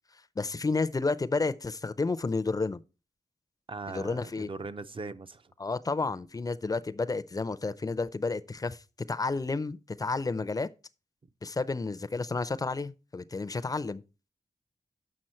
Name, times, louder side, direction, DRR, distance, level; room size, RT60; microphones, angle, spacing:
voice 1, 0.4-2.8 3.9-4.5 5.6-8.8 9.1-10.7 11.4-14.0, left 3 dB, 25° left, 0.5 m, -31 dB
voice 2, 3.7-5.5, right 3 dB, 40° right, 0.5 m, -40 dB
7.6 x 6.1 x 4.3 m
wide cardioid pair, 90°, 14 cm